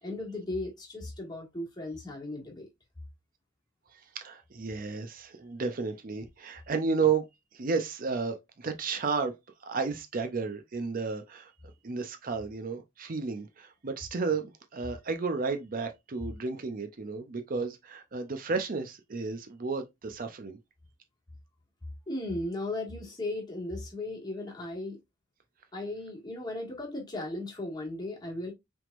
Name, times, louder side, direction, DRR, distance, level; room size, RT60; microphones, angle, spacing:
voice 1, 0.0-2.7 22.1-25.0 25.7-28.5, left 2 dB, 20° left, 1.8 m, -36 dB
voice 2, 3.9-7.2 7.5-9.3 9.6-11.5 11.8-20.6, right 4 dB, 45° right, 0.5 m, -32 dB
6.0 x 3.5 x 2.5 m
head